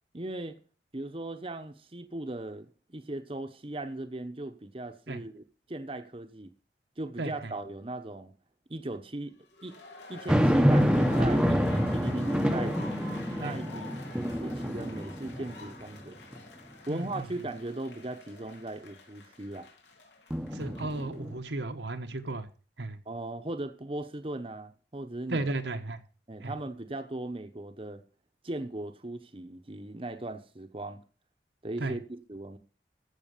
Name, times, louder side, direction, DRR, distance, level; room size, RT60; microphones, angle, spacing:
voice 1, 0.1-0.6 0.9-6.5 7.0-8.3 8.7-9.4 9.6-9.8 10.1-12.8 13.3-13.9 14.4-16.2 16.9-19.7 23.1-25.5 26.3-28.0 28.4-31.0 31.6-32.6, right 2 dB, 30° right, 0.9 m, -38 dB
voice 2, 7.2-7.5 13.4-13.6 16.9-17.3 20.5-22.5 22.8-23.0 25.3-26.0 26.4-26.5 31.8-31.9, right 2 dB, 85° right, 1.4 m, -34 dB
sound 1, 9.5-21.2, left 2 dB, 90° left, 3.4 m, -47 dB
sound 2, 10.3-15.8 16.3-16.4 20.3-21.4, equal, 5° right, 0.8 m, -27 dB
15.0 x 6.6 x 6.7 m
head